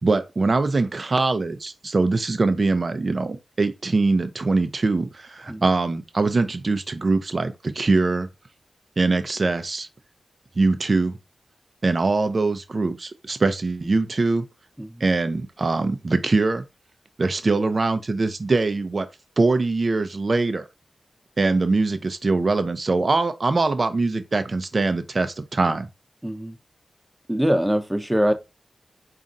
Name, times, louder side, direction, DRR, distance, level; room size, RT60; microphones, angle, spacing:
voice 1, 0.0-8.3 9.0-9.9 10.6-11.2 11.8-14.4 15.0-16.6 17.2-19.1 19.4-20.7 21.4-25.9, right 3 dB, 55° right, 0.6 m, -22 dB
voice 2, 26.2-26.6 27.3-28.3, equal, 10° right, 0.7 m, -23 dB
4.0 x 2.5 x 3.8 m
cardioid pair, 50°, 0 cm